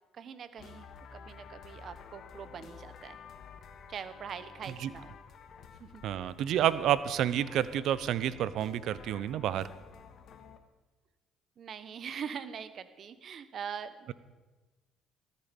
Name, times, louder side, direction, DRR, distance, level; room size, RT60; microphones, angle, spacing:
voice 1, 0.1-0.9 1.1-3.2 3.9-5.2 5.8-6.0 11.6-14.1, right 7 dB, 55° right, 13 dB, 1.2 m, -42 dB
sound 1, 0.6-10.6, left 6 dB, 60° left, 1.8 m, -51 dB
voice 2, 6.0-9.7, right 11 dB, 70° right, 16 dB, 0.8 m, -29 dB
16.5 x 13.5 x 5.3 m, 1.2 s
supercardioid pair, 85°, 0 cm